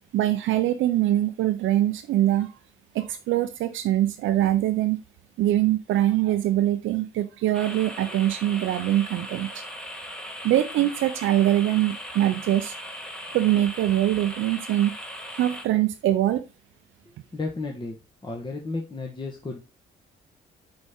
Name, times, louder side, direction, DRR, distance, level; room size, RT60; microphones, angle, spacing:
voice 1, 0.1-2.5 2.9-5.0 5.4-9.6 10.4-12.7 13.3-14.9 15.3-16.4, right 13 dB, 80° right, 8 dB, 0.5 m, -23 dB
sound 1, 7.5-15.6, equal, 5° left, 1.3 m, -38 dB
voice 2, 17.3-18.0 18.2-19.6, left 3 dB, 25° left, 0 dB, 1.3 m, -33 dB
6.3 x 4.3 x 3.6 m, 0.30 s
cardioid pair, 90°, 20 cm